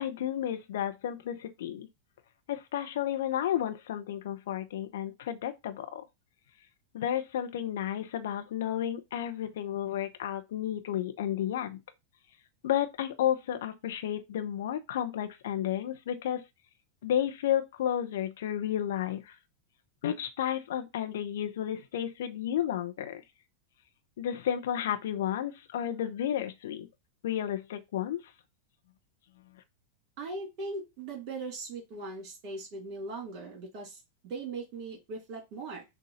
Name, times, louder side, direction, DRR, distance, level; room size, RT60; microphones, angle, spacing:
voice 1, 0.0-1.9 2.5-6.0 6.9-11.8 12.6-16.4 17.0-19.3 20.0-23.2 24.2-26.9 27.2-28.2, left 10 dB, 60° left, 0.9 m, -32 dB
voice 2, 30.2-35.8, right 3 dB, 40° right, 3.4 m, -39 dB
6.5 x 2.6 x 5.5 m
figure-of-eight pair, 90°, 0 cm